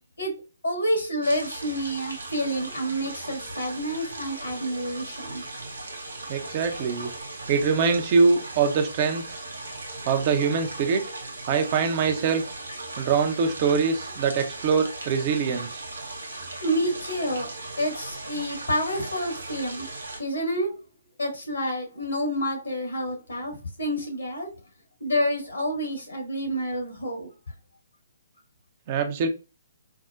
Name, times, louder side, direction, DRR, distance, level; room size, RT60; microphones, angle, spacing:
voice 1, 0.6-5.4 16.6-17.5 17.8-19.9 20.2-20.7 21.2-24.5 25.0-27.3, equal, 75° left, 1.5 m, -28 dB
sound 1, 1.2-20.2, right 2 dB, 75° right, 0.7 m, -38 dB
voice 2, 6.3-7.1 7.5-9.2 10.1-11.0 11.5-12.4 13.0-15.8 28.9-29.3, right 5 dB, 35° right, 0.5 m, -23 dB
4.4 x 2.1 x 2.4 m
figure-of-eight pair, 130°, 0 cm